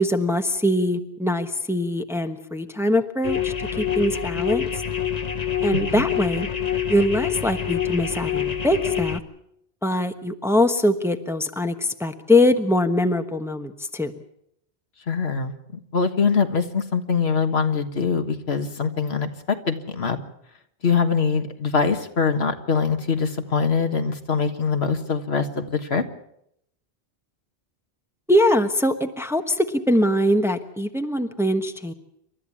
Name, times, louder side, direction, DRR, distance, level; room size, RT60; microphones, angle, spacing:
voice 1, 0.0-4.7 5.6-6.5 6.9-9.2 9.8-14.1 28.3-31.9, left 1 dB, ahead, 7 dB, 1.1 m, -22 dB
sound 1, 3.2-9.2, left 9 dB, 40° left, 1.1 m, -26 dB
voice 2, 5.7-6.1 15.1-15.5 15.9-20.2 20.8-26.0, left 5 dB, 75° left, 7 dB, 1.8 m, -23 dB
28.5 x 13.0 x 8.5 m, 0.76 s
omnidirectional pair, 1.1 m